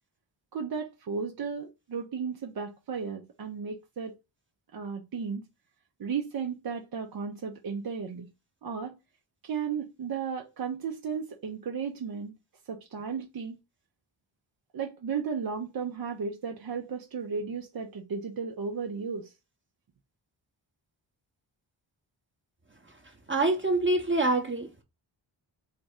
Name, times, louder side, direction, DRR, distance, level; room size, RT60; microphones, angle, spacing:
voice 1, 0.5-4.2 4.7-5.4 6.0-8.3 8.6-9.0 9.4-12.3 12.7-13.6 14.7-19.3, right 6 dB, 45° right, 0.6 m, -34 dB
voice 2, 23.3-24.8, right 2 dB, 25° right, 0.9 m, -25 dB
3.6 x 2.0 x 3.5 m
cardioid pair, 45°, 49 cm